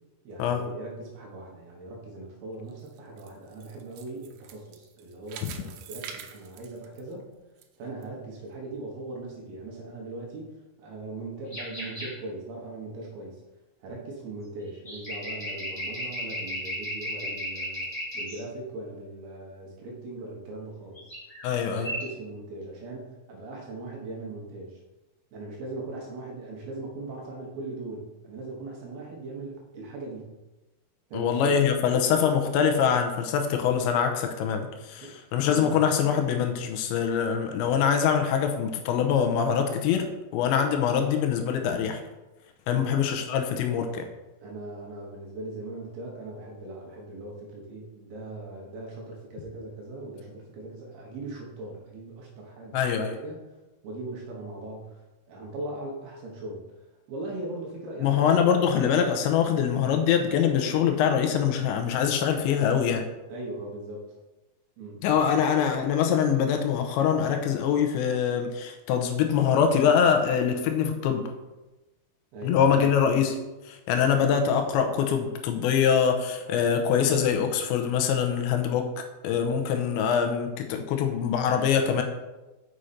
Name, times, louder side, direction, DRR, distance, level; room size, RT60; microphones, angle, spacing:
voice 1, 0.2-7.3 7.8-10.5 10.8-13.4 13.8-17.9 18.1-21.1 21.6-24.8 25.3-30.3 31.1-31.6 35.0-35.1 35.5-35.8 42.7-43.0 44.4-53.4 53.8-55.0 55.3-58.4 63.3-64.1 64.8-65.2 72.3-72.7, right 2 dB, 70° right, -2 dB, 2.9 m, -39 dB
sound 1, 2.7-7.7 8.0-8.1 8.7-8.8, right 8 dB, 85° right, 3.0 m, -45 dB
sound 2, 11.5-12.1 14.7-18.4 20.9-21.5 21.7-22.0, equal, 35° left, 0.8 m, -34 dB
voice 2, 21.4-21.9 31.1-42.0 42.7-44.0 52.7-53.2 58.0-63.1 65.0-71.3 72.4-73.4 73.7-82.0, left 7 dB, 90° left, 5 dB, 3.0 m, -24 dB
6.5 x 6.3 x 4.2 m, 1.1 s
omnidirectional pair, 5.2 m